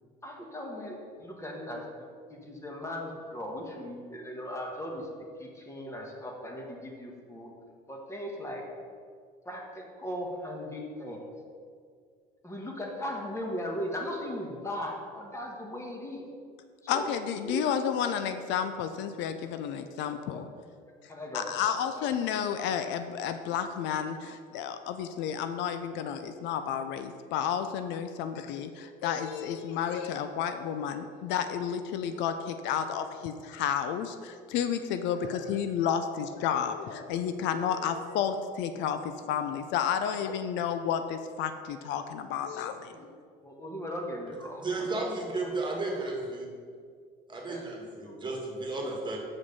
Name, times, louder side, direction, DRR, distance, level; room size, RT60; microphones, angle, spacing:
voice 1, 0.2-1.8 2.3-5.1 5.4-7.5 7.9-8.6 9.4-11.2 12.4-16.2 16.8-17.1 17.4-17.6 20.0-20.4 21.1-21.7 21.9-22.2 42.6-43.1 43.4-45.4 47.5-47.6 48.0-48.2, equal, 15° left, 0 dB, 1.5 m, -38 dB
voice 2, 16.9-20.5 21.3-42.9, left 8 dB, 65° left, 9 dB, 0.5 m, -31 dB
voice 3, 44.6-46.5 47.3-49.2, right 2 dB, 25° right, -1 dB, 1.7 m, -33 dB
6.5 x 5.0 x 5.5 m, 2.1 s
supercardioid pair, 95°, 20 cm